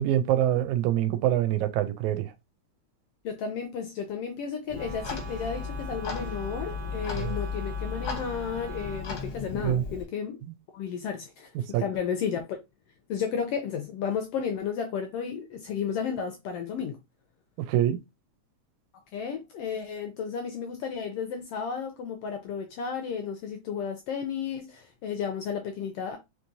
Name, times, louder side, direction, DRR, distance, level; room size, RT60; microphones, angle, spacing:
voice 1, 0.0-2.3 7.2-7.4 9.6-9.8 11.6-11.8 17.6-18.0, right 12 dB, 85° right, 2.0 m, -25 dB
voice 2, 3.2-10.4 10.7-12.4 13.1-17.0 19.1-26.2, left 7 dB, 80° left, 1.3 m, -33 dB
Clock, 4.7-10.0, left 5 dB, 60° left, 1.0 m, -35 dB
Wind instrument woodwind instrument, 4.7-9.1, right 5 dB, 65° right, 1.1 m, -44 dB
4.8 x 3.1 x 2.6 m
omnidirectional pair, 3.4 m